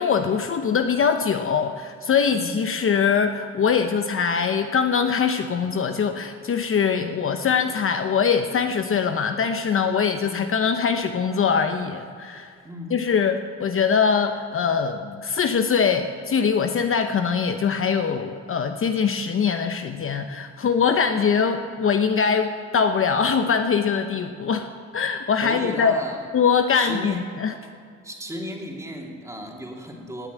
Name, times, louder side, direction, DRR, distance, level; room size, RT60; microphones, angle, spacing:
voice 1, 0.0-12.5 12.9-24.7 24.9-26.0 26.3-27.5, left 6 dB, 45° left, 7 dB, 0.8 m, -22 dB
voice 2, 12.6-12.9 25.4-26.2 26.7-27.2 28.0-30.3, equal, 10° right, 0 dB, 2.8 m, -35 dB
18.5 x 7.3 x 8.3 m, 2.2 s
cardioid pair, 90°, 30 cm